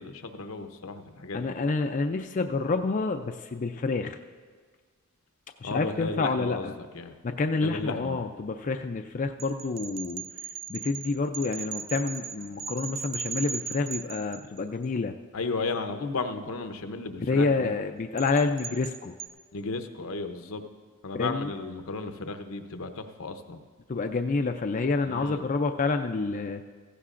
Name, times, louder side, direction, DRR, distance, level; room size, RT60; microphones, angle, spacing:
voice 1, 0.0-1.6 5.6-7.1 7.6-8.2 15.3-17.7 19.5-20.6 21.0-23.6 25.0-25.4, left 3 dB, 75° left, 8 dB, 0.8 m, -34 dB
voice 2, 1.3-4.2 5.6-6.7 7.2-10.2 10.7-15.2 17.3-19.1 21.1-21.5 23.9-26.6, left 3 dB, 40° left, 5 dB, 0.4 m, -28 dB
sound 1, 9.4-14.8 18.2-19.3, right 6 dB, 45° right, 0.5 m, -38 dB
15.5 x 15.0 x 2.5 m, 1.5 s
head